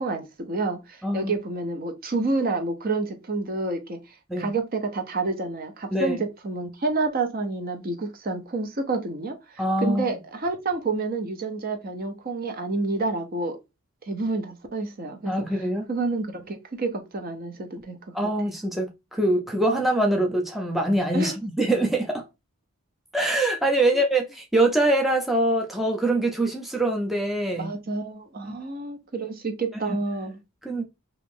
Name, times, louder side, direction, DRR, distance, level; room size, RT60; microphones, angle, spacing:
voice 1, 0.0-4.0 4.4-13.6 14.1-18.0 21.1-21.3 23.8-24.0 27.6-30.4, right 3 dB, 45° right, 0.6 m, -29 dB
voice 2, 1.0-1.3 4.3-4.5 5.9-6.2 9.6-10.0 15.3-15.9 18.1-22.3 23.1-27.7 28.4-28.5 29.9-30.0 30.6-30.8, right 1 dB, ahead, 0.4 m, -24 dB
2.9 x 2.5 x 3.5 m
head